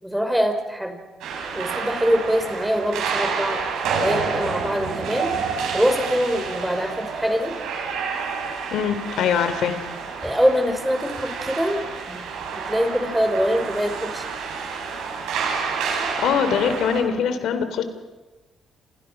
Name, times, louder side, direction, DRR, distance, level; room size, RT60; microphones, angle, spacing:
voice 1, 0.0-1.0 1.5-3.6 4.0-5.3 5.7-7.5 10.2-12.3 12.5-14.3, equal, 5° right, 5 dB, 5.4 m, -23 dB
sound 1, 1.2-17.0, right 5 dB, 90° right, 7.8 m, -29 dB
voice 2, 8.7-9.8 16.2-17.8, left 7 dB, 80° left, 10 dB, 3.2 m, -22 dB
29.5 x 28.0 x 6.0 m, 1.1 s
cardioid pair, 90°, 0 cm